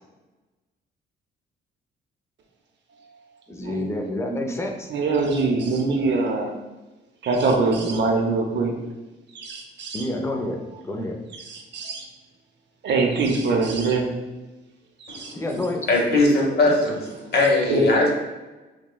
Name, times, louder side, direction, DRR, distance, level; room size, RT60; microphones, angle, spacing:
voice 1, 3.5-4.9 9.9-10.6 10.8-11.2 15.3-15.9, left 1 dB, 15° left, 2 dB, 0.5 m, -28 dB
voice 2, 4.9-6.5 7.2-8.7 9.3-10.0 11.4-12.0 12.8-14.1 15.0-15.3 17.6-18.0, right 3 dB, 60° right, 2 dB, 0.7 m, -23 dB
voice 3, 15.9-18.1, left 2 dB, 55° left, -1 dB, 1.1 m, -20 dB
6.0 x 2.2 x 2.3 m, 1.1 s
cardioid pair, 90°, 20 cm